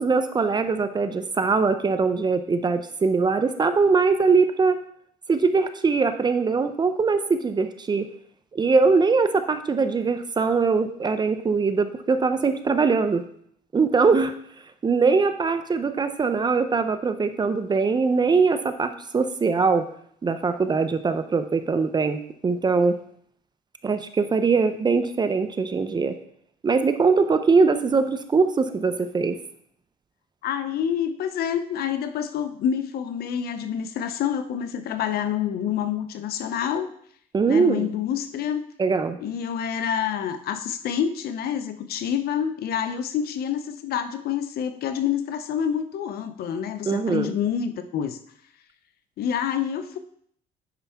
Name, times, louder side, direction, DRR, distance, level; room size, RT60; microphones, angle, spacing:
voice 1, 0.0-4.8 5.3-8.0 8.5-13.2 13.7-14.3 14.8-19.9 20.2-23.0 23.8-26.2 26.6-29.4 37.3-37.9 38.8-39.2 46.8-47.3, right 4 dB, 25° right, 9 dB, 0.6 m, -22 dB
voice 2, 30.4-36.9 37.5-38.6 39.2-48.2 49.2-50.0, left 8 dB, 65° left, 10 dB, 0.7 m, -27 dB
9.7 x 5.5 x 3.5 m, 0.64 s
cardioid pair, 110°, 17 cm